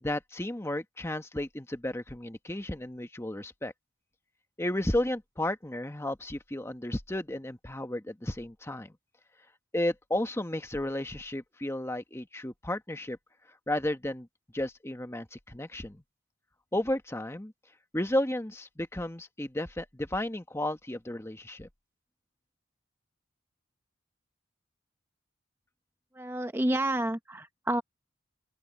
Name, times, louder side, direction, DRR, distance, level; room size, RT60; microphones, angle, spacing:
voice 1, 0.0-3.7 4.6-8.9 9.7-13.2 13.7-14.3 14.5-16.0 16.7-17.5 17.9-21.7, left 1 dB, 15° left, 1.2 m, -33 dB
voice 2, 26.2-27.8, right 1 dB, 10° right, 0.8 m, -29 dB
open air
head